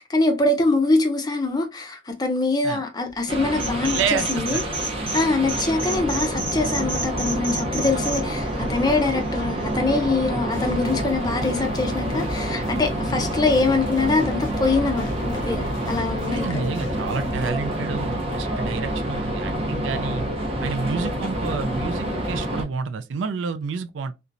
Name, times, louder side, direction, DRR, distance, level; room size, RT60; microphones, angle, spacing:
voice 1, 0.0-4.6 5.1-16.6, left 3 dB, 20° left, 0.5 m, -23 dB
sound 1, 3.3-22.6, right 1 dB, 30° right, 0.7 m, -27 dB
sound 2, 3.5-5.2 5.5-8.2, right 2 dB, 10° right, 1.5 m, -29 dB
voice 2, 3.8-4.6 5.0-5.6 16.3-20.2 20.6-24.1, right 5 dB, 80° right, 0.4 m, -29 dB
sound 3, 10.4-17.5, left 3 dB, 80° left, 0.3 m, -37 dB
2.8 x 2.2 x 2.5 m
head